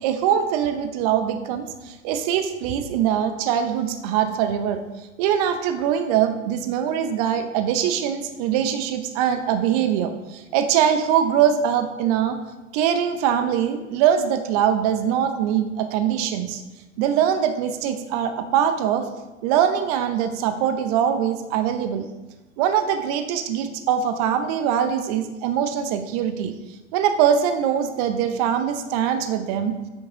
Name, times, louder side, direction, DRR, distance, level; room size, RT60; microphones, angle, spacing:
voice 1, 0.0-4.8 5.2-12.4 12.7-16.6 17.0-19.1 19.4-22.1 22.6-26.5 26.9-29.8, right 9 dB, 30° right, 8 dB, 0.6 m, -22 dB
7.9 x 4.7 x 3.6 m, 1.1 s
figure-of-eight pair, 110°, 41 cm